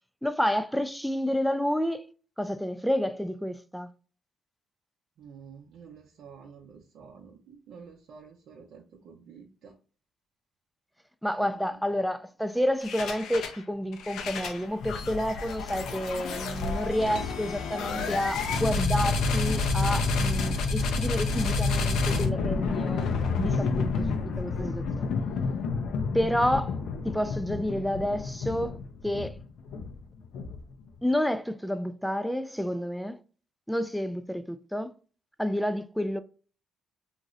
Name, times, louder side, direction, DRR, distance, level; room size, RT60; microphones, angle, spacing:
voice 1, 0.2-2.0 2.4-3.9 11.2-23.1 23.4-25.1 26.1-26.8 27.0-28.7 29.0-29.4 31.0-33.2 33.7-34.9 35.4-36.2, equal, ahead, 0.3 m, -29 dB
voice 2, 5.2-9.7 11.4-11.8, right 6 dB, 80° right, 0.6 m, -49 dB
sound 1, 12.8-13.6 13.9-30.9, left 4 dB, 80° left, 0.5 m, -29 dB
3.0 x 2.5 x 2.5 m
cardioid pair, 90°, 0 cm